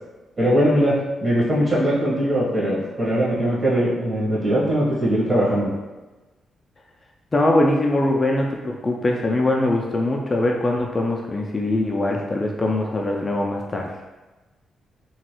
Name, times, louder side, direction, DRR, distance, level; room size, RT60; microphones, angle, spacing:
voice 1, 0.4-5.7, equal, 30° right, -7 dB, 1.3 m, -20 dB
voice 2, 7.3-13.9, left 2 dB, 30° left, 0 dB, 0.3 m, -22 dB
3.0 x 2.2 x 2.9 m, 1.2 s
cardioid pair, 95°, 0 cm